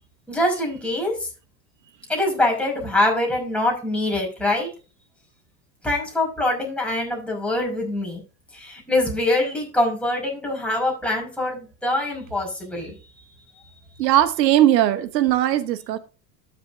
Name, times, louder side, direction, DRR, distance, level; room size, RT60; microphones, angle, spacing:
voice 1, 0.3-1.3 2.1-4.7 5.8-8.2 8.5-12.9, left 1 dB, ahead, 5.4 m, -24 dB
voice 2, 14.0-16.0, right 12 dB, 85° right, 1.1 m, -19 dB
13.0 x 7.3 x 2.6 m
hypercardioid pair, 105°, 49 cm